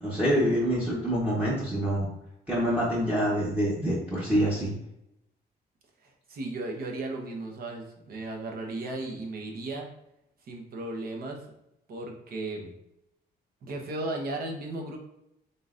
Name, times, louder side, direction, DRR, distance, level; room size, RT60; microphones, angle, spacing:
voice 1, 0.0-2.1 2.5-4.7, equal, 10° right, -8 dB, 0.9 m, -26 dB
voice 2, 6.0-9.9 10.5-11.4 11.9-12.7 13.6-15.0, right 2 dB, 60° right, 1 dB, 0.9 m, -35 dB
3.9 x 3.8 x 2.5 m, 0.83 s
cardioid pair, 135°, 17 cm